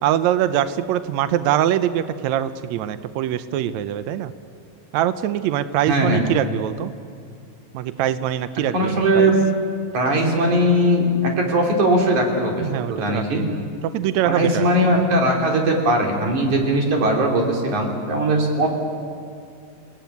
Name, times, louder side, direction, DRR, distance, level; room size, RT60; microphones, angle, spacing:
voice 1, 0.0-4.3 4.9-6.9 7.7-9.3 12.6-13.7 13.9-14.7, right 11 dB, 75° right, 12 dB, 1.7 m, -23 dB
voice 2, 5.9-6.2 8.7-9.3 9.9-12.6 12.9-13.4 14.3-18.7, right 1 dB, 60° right, 1 dB, 4.6 m, -19 dB
29.0 x 17.5 x 9.4 m, 2.3 s
omnidirectional pair, 4.0 m